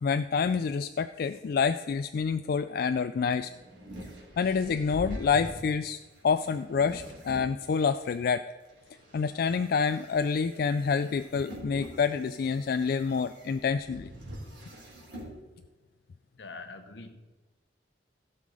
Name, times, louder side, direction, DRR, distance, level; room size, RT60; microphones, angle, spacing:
voice 1, 0.0-3.5 4.4-6.0 6.2-8.4 9.1-14.1, left 5 dB, 55° left, 10 dB, 0.3 m, -27 dB
sound 1, 3.1-8.1 8.7-15.3, equal, 90° right, 3.4 m, -45 dB
voice 2, 16.4-17.1, left 3 dB, 80° left, 7 dB, 1.2 m, -43 dB
16.0 x 5.7 x 4.9 m, 1.2 s
head